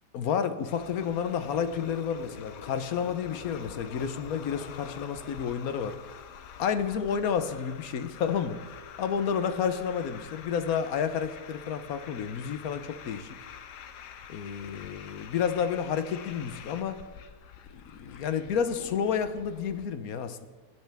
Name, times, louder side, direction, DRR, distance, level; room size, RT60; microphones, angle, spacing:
voice 1, 0.1-6.0 6.6-8.6 9.0-13.4 14.3-17.0 17.7-20.5, left 7 dB, 65° left, 10 dB, 1.2 m, -30 dB
sound 1, 0.7-19.8, left 8 dB, 85° left, 1.3 m, -46 dB
18.5 x 9.1 x 3.5 m, 1.4 s
omnidirectional pair, 1.7 m